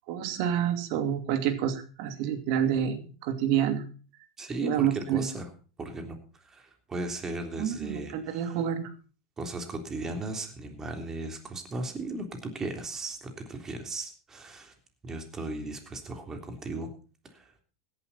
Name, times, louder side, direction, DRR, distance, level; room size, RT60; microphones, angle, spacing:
voice 1, 0.1-3.8 4.6-5.3 7.6-8.9, right 9 dB, 60° right, 8 dB, 2.6 m, -28 dB
voice 2, 4.4-5.5 5.8-8.6 9.4-14.7 15.0-16.9 17.3-17.5, right 2 dB, 20° right, 5 dB, 3.4 m, -36 dB
17.0 x 11.0 x 4.2 m, 0.37 s
hypercardioid pair, 110°, 2 cm